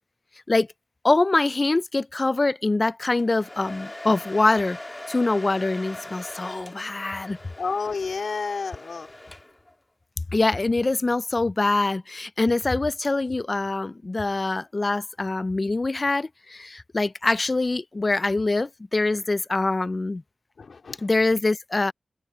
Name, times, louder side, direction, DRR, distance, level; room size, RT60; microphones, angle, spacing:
voice 1, 1.0-4.8 5.1-7.4 10.3-20.2 21.0-21.9, left 2 dB, 35° left, 0.4 m, -24 dB
Domestic sounds home sounds, 3.1-9.8, left 1 dB, 20° left, 1.6 m, -41 dB
voice 2, 7.6-9.1 20.6-21.1, left 4 dB, 75° left, 3.7 m, -30 dB
open air
wide cardioid pair, 100°, 0 cm